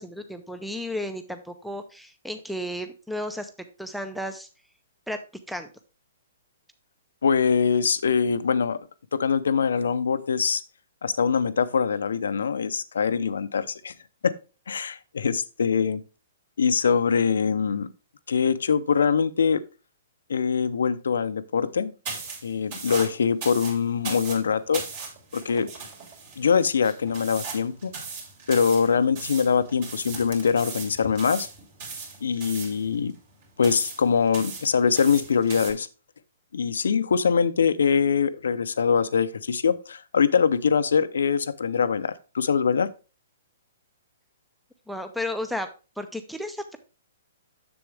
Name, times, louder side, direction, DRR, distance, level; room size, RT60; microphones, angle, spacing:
voice 1, 0.0-3.5 3.8-4.5 5.1-5.2 5.5-5.7 44.9-45.7 46.0-46.8, left 1 dB, ahead, 7 dB, 0.6 m, -33 dB
voice 2, 7.2-10.6 11.0-13.9 14.2-14.3 14.7-16.0 16.6-17.9 18.3-19.6 20.3-21.9 22.4-24.8 25.3-25.7 26.4-27.9 28.5-31.5 32.2-33.1 33.6-35.9 36.5-42.9, left 6 dB, 75° left, 15 dB, 0.6 m, -23 dB
sound 1, 22.0-35.7, right 5 dB, 45° right, 3.0 m, -38 dB
7.0 x 6.9 x 3.3 m, 0.32 s
hypercardioid pair, 130°, 0 cm